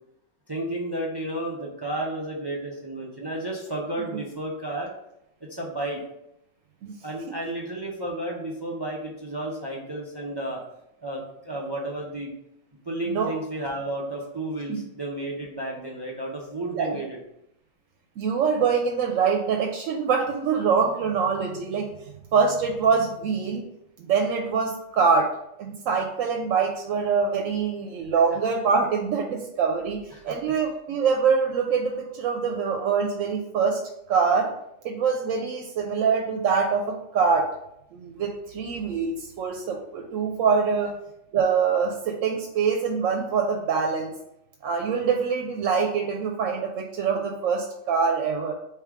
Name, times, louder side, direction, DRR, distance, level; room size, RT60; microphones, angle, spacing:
voice 1, 0.5-4.9 5.5-6.0 7.0-10.6 11.0-12.3 12.9-17.2 28.1-28.4 30.1-30.3, right 1 dB, 40° right, -2 dB, 0.3 m, -32 dB
voice 2, 18.2-21.9 22.3-23.6 24.0-25.3 25.6-30.0 30.2-33.8 34.1-34.5 34.8-37.5 37.9-40.9 41.3-44.1 44.6-48.5, right 5 dB, 80° right, 2 dB, 1.0 m, -24 dB
3.5 x 3.2 x 4.6 m, 0.81 s
omnidirectional pair, 1.3 m